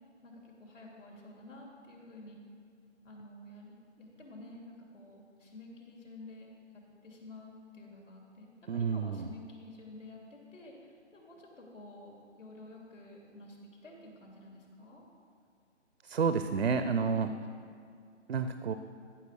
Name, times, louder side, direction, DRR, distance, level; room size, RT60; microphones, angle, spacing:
voice 1, 0.2-2.4 3.0-13.6 13.8-15.0 17.0-17.5, left 2 dB, 75° left, -1 dB, 3.0 m, -50 dB
voice 2, 8.7-9.3 16.0-17.3 18.3-18.7, right 5 dB, 55° right, 9 dB, 0.6 m, -30 dB
14.0 x 5.8 x 6.4 m, 2.4 s
hypercardioid pair, 160°, 38 cm